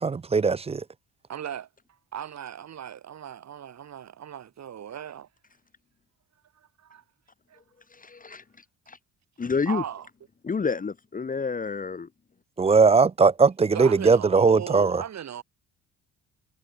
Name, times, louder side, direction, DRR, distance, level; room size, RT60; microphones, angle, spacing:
voice 1, 0.0-0.8 12.6-15.0, right 4 dB, 20° right, 0.5 m, -19 dB
voice 2, 1.3-1.7 2.1-5.3 6.6-7.0 7.5-7.6 9.7-10.1 13.7-15.4, right 9 dB, 60° right, 6.9 m, -37 dB
voice 3, 7.9-8.4 8.9-9.0 9.4-9.8 10.4-12.1, left 5 dB, 25° left, 1.2 m, -29 dB
cardioid pair, 90°, 30 cm